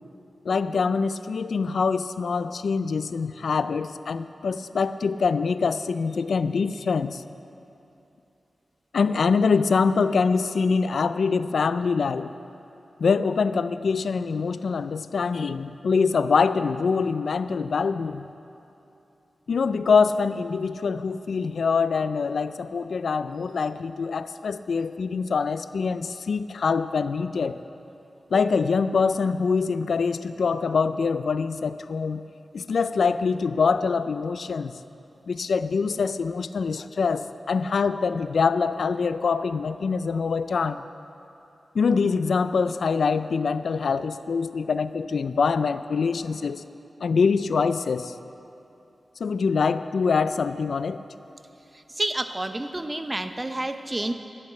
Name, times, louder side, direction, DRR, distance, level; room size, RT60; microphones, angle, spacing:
voice 1, 0.4-7.2 8.9-12.3 13.0-18.3 19.5-27.6 28.3-32.2 32.5-34.8 35.3-40.8 41.7-46.6 47.0-48.1 49.2-51.0, left 5 dB, 80° left, 13 dB, 0.4 m, -24 dB
voice 2, 52.0-54.1, right 1 dB, 20° right, 8 dB, 0.7 m, -29 dB
12.0 x 8.4 x 7.8 m, 2.8 s
wide cardioid pair, 90°, 0 cm